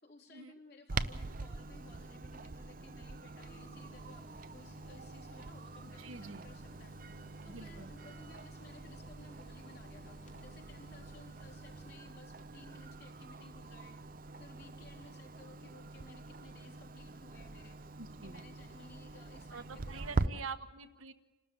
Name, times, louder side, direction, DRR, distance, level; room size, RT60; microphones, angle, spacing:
voice 1, 0.0-4.2 4.5-14.0 14.4-17.8 18.2-20.5, left 2 dB, 50° left, -2 dB, 3.7 m, -58 dB
Clock, 0.9-20.3, right 3 dB, 40° right, 0.7 m, -43 dB
sound 1, 3.4-11.9, right 1 dB, 35° left, 2.6 m, -57 dB
voice 2, 6.0-6.4 7.5-7.9 18.0-18.4 19.5-21.1, right 4 dB, 90° right, 7 dB, 1.3 m, -46 dB
27.5 x 13.0 x 8.4 m, 1.1 s
head